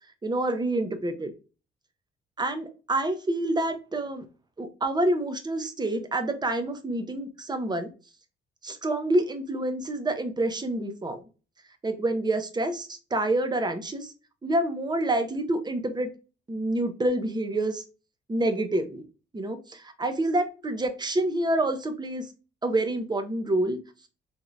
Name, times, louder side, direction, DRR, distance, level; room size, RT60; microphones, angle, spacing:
voice 1, 0.2-1.3 2.4-4.2 4.6-7.9 8.6-11.2 11.8-14.1 14.4-16.1 16.5-17.8 18.3-19.0 19.3-22.3 22.6-23.8, right 1 dB, 20° right, 8 dB, 0.8 m, -27 dB
3.6 x 3.3 x 2.5 m, 0.33 s
cardioid pair, 90°, 20 cm